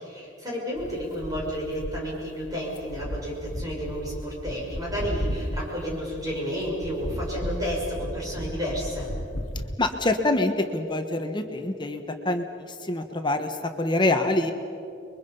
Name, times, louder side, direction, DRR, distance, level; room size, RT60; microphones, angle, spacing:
voice 1, 0.0-9.1, equal, 20° right, -4 dB, 6.0 m, -31 dB
sound 1, 0.8-9.8, equal, 85° left, 1.5 m, -34 dB
voice 2, 9.8-12.4 12.9-14.5, left 2 dB, 25° left, 5 dB, 1.3 m, -25 dB
30.0 x 22.5 x 5.5 m, 2.6 s
head